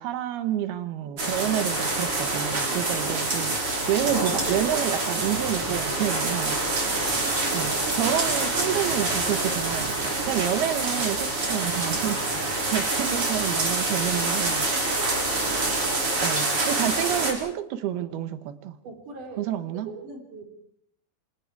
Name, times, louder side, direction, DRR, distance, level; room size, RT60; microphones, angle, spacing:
voice 1, 0.0-3.5 3.9-6.6 7.5-14.7 16.2-18.8 19.4-19.9, right 11 dB, 70° right, 11 dB, 2.7 m, -29 dB
sound 1, 1.2-17.3, right 2 dB, 30° right, 4.8 m, -26 dB
voice 2, 18.8-19.5 19.7-20.4, right 4 dB, 45° right, 3 dB, 4.5 m, -40 dB
27.5 x 25.5 x 4.7 m, 0.69 s
omnidirectional pair, 5.4 m